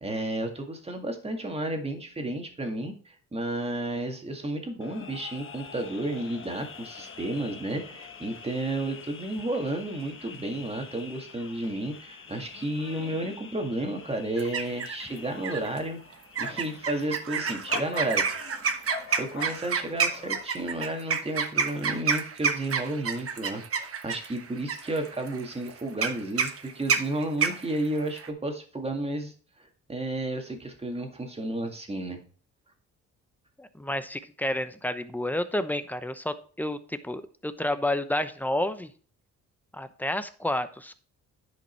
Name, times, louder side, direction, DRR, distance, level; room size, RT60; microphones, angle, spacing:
voice 1, 0.0-18.2 18.8-32.2, right 1 dB, 20° right, 4 dB, 2.0 m, -32 dB
sound 1, 4.8-20.5, left 6 dB, 45° left, 1.3 m, -45 dB
sound 2, 14.4-15.0 15.4-15.8 16.4-28.3, right 6 dB, 50° right, 1.2 m, -29 dB
voice 2, 33.6-38.9 39.7-40.9, left 1 dB, 5° left, 11 dB, 0.8 m, -30 dB
10.5 x 5.3 x 4.5 m, 0.41 s
cardioid pair, 90°, 30 cm